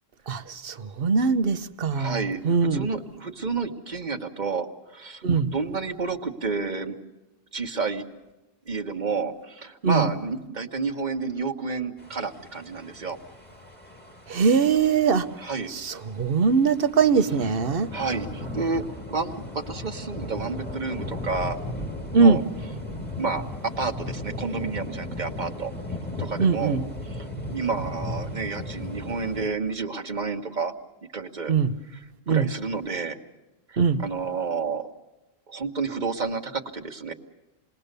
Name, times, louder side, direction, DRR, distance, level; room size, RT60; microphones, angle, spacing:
voice 1, 0.3-2.2 2.4-2.9 5.2-5.5 9.8-10.1 14.3-15.3 15.7-17.9 22.1-22.4 26.4-26.8 31.5-31.7 32.3-32.5 33.8-34.0, right 5 dB, 60° right, 11 dB, 1.1 m, -21 dB
voice 2, 1.9-5.2 5.5-7.0 7.5-8.0 8.7-13.2 15.4-15.7 17.9-21.6 22.1-22.4 23.2-25.7 26.2-26.8 27.0-30.7 31.1-31.5 32.3-33.2 33.7-34.9 35.5-37.1, right 4 dB, 45° right, 4 dB, 1.6 m, -30 dB
sound 1, 12.0-29.5, left 1 dB, 10° left, 1.9 m, -36 dB
28.5 x 20.5 x 6.7 m, 1.1 s
omnidirectional pair, 1.1 m